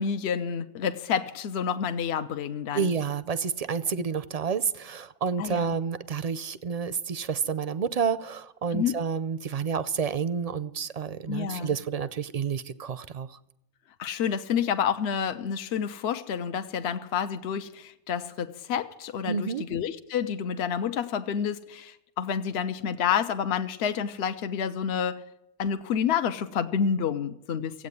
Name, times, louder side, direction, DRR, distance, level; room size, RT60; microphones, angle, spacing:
voice 1, 0.0-2.9 4.0-4.1 5.4-5.8 8.7-9.0 11.3-11.8 14.0-25.2 25.6-27.9, left 7 dB, 65° left, 9 dB, 0.9 m, -29 dB
voice 2, 2.7-13.4 19.3-19.6, right 6 dB, 45° right, 15 dB, 0.5 m, -29 dB
16.0 x 8.4 x 9.6 m, 0.87 s
omnidirectional pair, 1.2 m